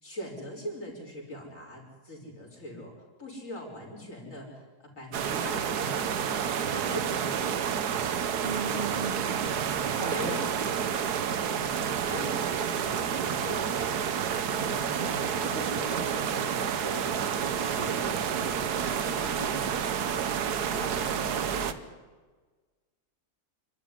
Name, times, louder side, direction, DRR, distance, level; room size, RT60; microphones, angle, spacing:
voice 1, 0.0-6.1 6.5-7.6 9.6-10.8 11.3-13.9 14.5-17.3 17.5-18.4 18.9-20.3 20.7-21.9, equal, 50° left, 0 dB, 5.9 m, -42 dB
sound 1, 5.1-21.7, right 7 dB, 75° right, 1.6 m, -29 dB
voice 2, 8.4-9.3 9.8-10.4 15.0-15.3, right 3 dB, 35° right, 6 dB, 1.5 m, -36 dB
28.0 x 12.5 x 10.0 m, 1.3 s
omnidirectional pair, 1.7 m